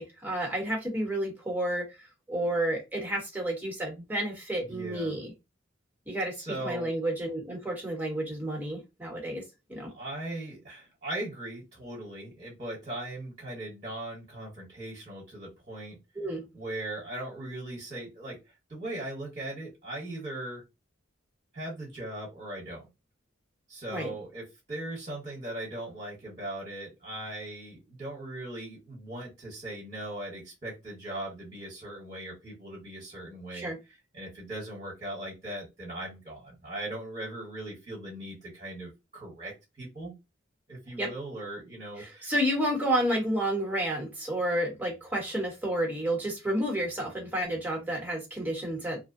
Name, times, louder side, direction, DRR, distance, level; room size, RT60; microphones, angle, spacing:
voice 1, 0.0-1.9 2.3-5.3 6.1-6.4 6.6-9.4 9.7-9.9 16.2-16.4 23.9-24.1 33.5-33.8 41.0-41.1 42.0-49.0, right 1 dB, 10° right, 0 dB, 0.9 m, -30 dB
voice 2, 4.7-5.2 6.4-6.9 9.9-16.0 16.5-18.4 18.7-20.6 21.5-22.8 23.7-33.7 34.1-40.1 40.7-42.3, right 1 dB, 35° right, -4 dB, 1.0 m, -39 dB
2.6 x 2.1 x 2.5 m, 0.24 s
head